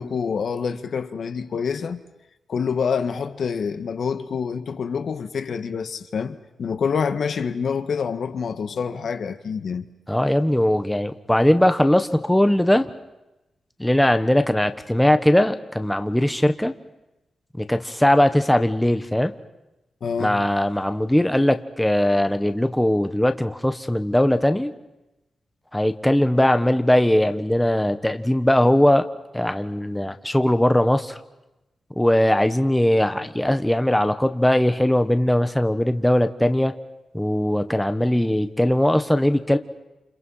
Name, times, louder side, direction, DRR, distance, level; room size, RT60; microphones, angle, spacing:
voice 1, 0.0-2.0 2.5-9.8 20.0-20.4, left 6 dB, 65° left, 1.7 m, -27 dB
voice 2, 10.1-12.9 13.8-16.7 17.6-19.3 20.2-24.7 25.7-29.1 29.3-31.2 32.0-36.7 37.1-39.6, left 1 dB, 5° left, 1.3 m, -20 dB
29.5 x 29.0 x 5.8 m
wide cardioid pair, 120°, 0 cm